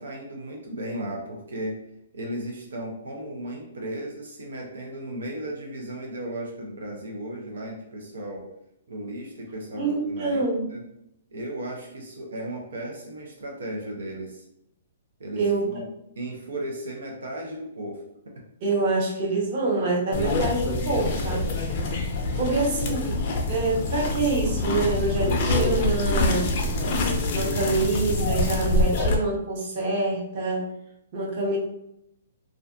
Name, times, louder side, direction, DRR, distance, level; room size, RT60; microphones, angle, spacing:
voice 1, 0.0-1.8 2.1-8.5 8.9-10.4 10.7-10.8 11.3-14.4 15.2-15.9 16.2-18.4 22.3-22.9, right 1 dB, 90° right, 0 dB, 0.6 m, -35 dB
voice 2, 9.7-10.6 15.3-15.7 18.6-21.5 22.4-23.2 23.5-26.5 27.3-30.7 31.1-31.6, right 3 dB, 40° right, -3 dB, 0.8 m, -26 dB
sound 1, 20.1-29.2, left 2 dB, 45° left, 0.5 m, -25 dB
2.4 x 2.2 x 2.4 m, 0.78 s
hypercardioid pair, 155°, 0 cm